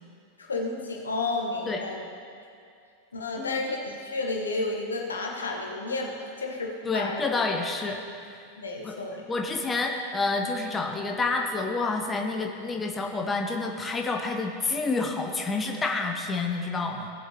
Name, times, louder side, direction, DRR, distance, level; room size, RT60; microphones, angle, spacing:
voice 1, 0.4-2.0 3.1-7.2 8.6-9.2, left 3 dB, 75° left, 0 dB, 1.3 m, -31 dB
voice 2, 6.8-8.4 8.8-9.0 9.3-17.1, left 3 dB, 15° left, 2 dB, 0.8 m, -29 dB
17.0 x 7.7 x 3.0 m, 2.3 s
figure-of-eight pair, 90°, 0 cm